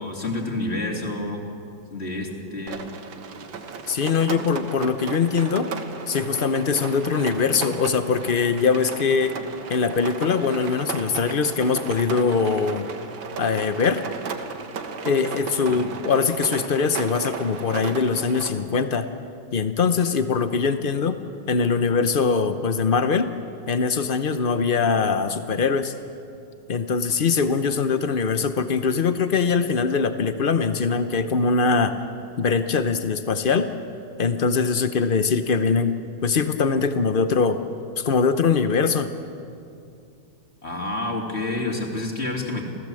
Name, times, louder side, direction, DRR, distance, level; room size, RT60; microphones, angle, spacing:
voice 1, 0.0-1.4 1.9-2.8 15.7-15.8 40.6-42.6, left 2 dB, 30° left, 1 dB, 2.9 m, -28 dB
Rain, 2.7-18.5, right 5 dB, 75° right, 2.1 m, -35 dB
voice 2, 3.9-5.7 6.1-9.3 9.7-12.9 13.4-14.0 15.0-19.1 19.5-21.2 21.5-23.3 23.7-25.9 26.7-32.0 32.4-33.7 34.2-36.0 36.2-37.6 38.0-39.1, left 5 dB, 90° left, 9 dB, 0.4 m, -22 dB
29.5 x 15.5 x 7.7 m, 2.5 s
omnidirectional pair, 2.2 m